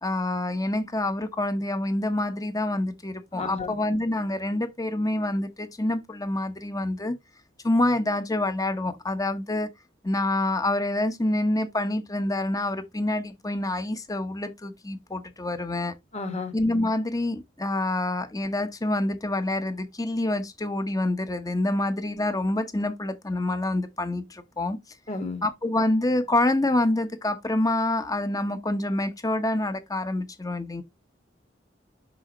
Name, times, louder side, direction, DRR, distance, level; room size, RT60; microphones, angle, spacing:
voice 1, 0.0-7.1 7.6-9.7 10.0-15.9 16.5-24.8 25.4-30.8, left 1 dB, 20° left, 1.0 m, -27 dB
voice 2, 3.3-3.7 16.1-16.5 25.1-25.4, left 3 dB, 35° left, 1.7 m, -32 dB
6.3 x 5.6 x 3.1 m
head